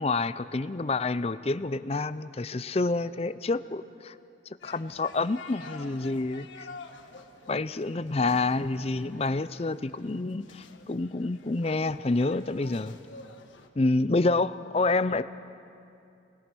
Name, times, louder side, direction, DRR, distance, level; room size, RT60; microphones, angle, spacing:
voice 1, 0.0-4.1 4.6-6.7 7.5-12.9 13.8-15.2, left 3 dB, 30° left, 14 dB, 0.5 m, -28 dB
sound 1, 4.6-13.7, left 3 dB, 85° left, 1.6 m, -48 dB
29.5 x 20.5 x 6.2 m, 2.6 s
head